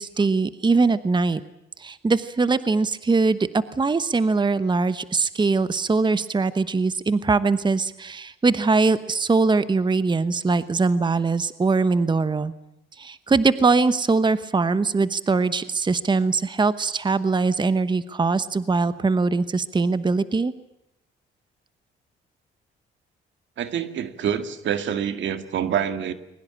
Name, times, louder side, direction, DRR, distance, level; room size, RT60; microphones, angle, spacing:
voice 1, 0.0-1.4 1.8-12.5 13.0-20.5, right 4 dB, 20° right, 14 dB, 1.0 m, -22 dB
voice 2, 23.6-26.1, right 8 dB, 70° right, 10 dB, 2.0 m, -26 dB
22.0 x 20.0 x 8.8 m, 0.87 s
cardioid pair, 90°, 20 cm